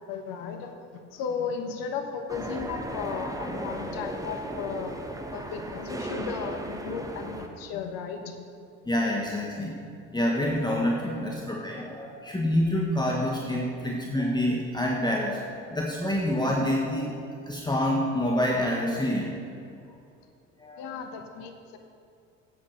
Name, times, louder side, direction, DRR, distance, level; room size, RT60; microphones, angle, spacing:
voice 1, 0.1-5.0 5.3-8.4 20.8-21.8, left 6 dB, 65° left, 6 dB, 1.3 m, -35 dB
sound 1, 2.3-7.5, right 1 dB, 10° right, 1.2 m, -36 dB
voice 2, 8.8-9.7 10.1-17.2 17.4-19.3 20.6-20.9, left 1 dB, 10° left, -2 dB, 1.5 m, -27 dB
8.5 x 8.2 x 6.5 m, 2.5 s
hypercardioid pair, 65°, 37 cm